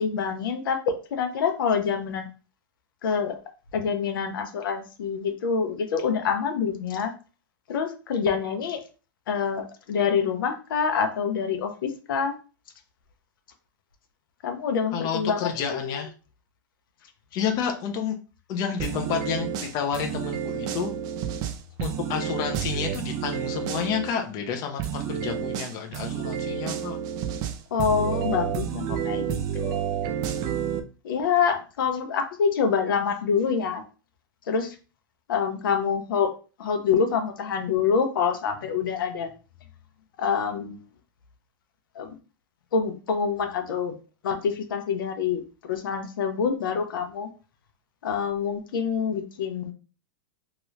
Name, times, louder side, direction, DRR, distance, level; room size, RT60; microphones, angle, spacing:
voice 1, 0.0-2.3 3.0-3.4 3.7-7.1 7.7-8.8 9.3-12.3 14.4-16.0 27.7-29.9 31.0-33.8 34.5-34.8 35.3-36.3 36.6-39.3 40.2-40.8 42.0-42.2 42.7-43.9 44.2-47.3 48.0-49.7, left 6 dB, 80° left, 6 dB, 0.7 m, -26 dB
voice 2, 14.9-16.1 17.4-18.1 18.5-19.5 19.7-20.9 21.8-27.0, left 7 dB, 35° left, 4 dB, 0.6 m, -30 dB
sound 1, 18.8-24.1 24.8-30.8, right 9 dB, 35° right, 0.4 m, -30 dB
2.9 x 2.4 x 3.1 m, 0.34 s
supercardioid pair, 145°, 11 cm